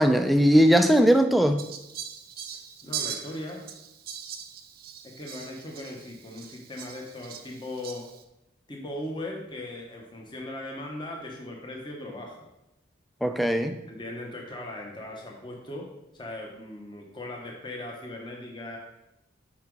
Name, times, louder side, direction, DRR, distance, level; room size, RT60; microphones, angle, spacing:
voice 1, 0.0-1.6 13.2-13.8, equal, ahead, 7 dB, 0.3 m, -19 dB
Fowl, 1.6-8.2, right 8 dB, 50° right, 0.5 m, -40 dB
voice 2, 2.8-3.6 5.0-8.1 8.7-12.5 13.9-18.8, left 1 dB, 25° left, 0 dB, 1.0 m, -38 dB
5.8 x 4.8 x 4.6 m, 0.92 s
head